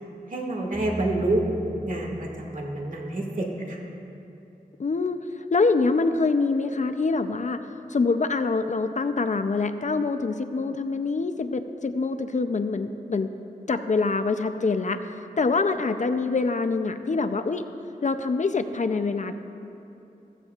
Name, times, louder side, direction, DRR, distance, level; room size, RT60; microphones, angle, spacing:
voice 1, 0.3-1.4 1.8-3.8, right 2 dB, 60° right, -1 dB, 2.0 m, -28 dB
sound 1, 0.7-4.5, equal, 5° right, 1.4 m, -41 dB
voice 2, 4.8-13.3 13.7-15.0 15.4-17.7 18.0-19.3, left 3 dB, 55° left, 9 dB, 0.5 m, -25 dB
15.0 x 15.0 x 2.4 m, 2.9 s
wide cardioid pair, 75°, 15 cm